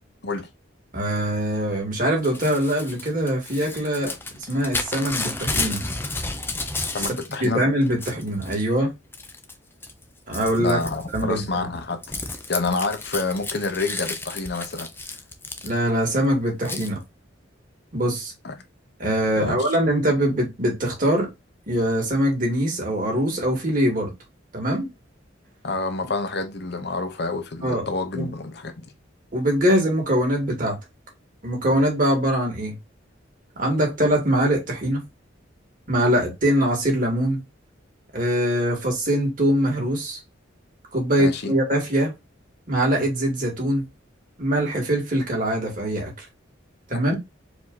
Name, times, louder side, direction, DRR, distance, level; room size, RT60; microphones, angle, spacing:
voice 1, 0.9-4.1 4.5-5.8 7.4-8.9 10.3-10.8 11.1-11.7 15.6-17.0 17.9-18.3 19.0-21.3 21.7-24.1 24.5-24.9 27.6-27.8 28.1-28.3 29.3-30.8 31.4-32.8 33.6-35.0 35.9-37.4 38.1-40.2 40.9-42.1 42.7-43.9 44.4-46.3 46.9-47.2, equal, 45° right, 2.3 m, -23 dB
Crumpling crinkling / Tearing, 2.2-7.5 7.8-8.6 9.1-9.5 9.8-16.1 16.7-16.9, left 3 dB, 10° left, 0.6 m, -32 dB
voice 2, 6.9-7.6 10.6-12.0 12.3-14.9 18.4-18.5 19.4-19.5 25.6-28.9 41.2-41.5 46.9-47.1, left 3 dB, 55° left, 0.8 m, -28 dB
4.7 x 2.8 x 3.9 m
head